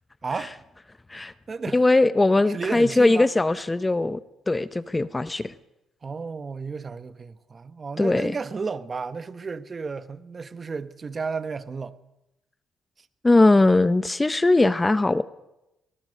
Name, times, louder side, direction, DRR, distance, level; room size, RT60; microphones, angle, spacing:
voice 1, 0.2-0.5 1.5-1.8 2.5-3.3 6.0-12.0 13.0-13.1, right 4 dB, 35° right, 1.3 m, -33 dB
voice 2, 1.7-4.2 4.5-5.5 8.0-8.3 13.2-15.2, left 2 dB, 15° left, 0.8 m, -20 dB
23.5 x 19.5 x 6.6 m
cardioid pair, 90°, 0 cm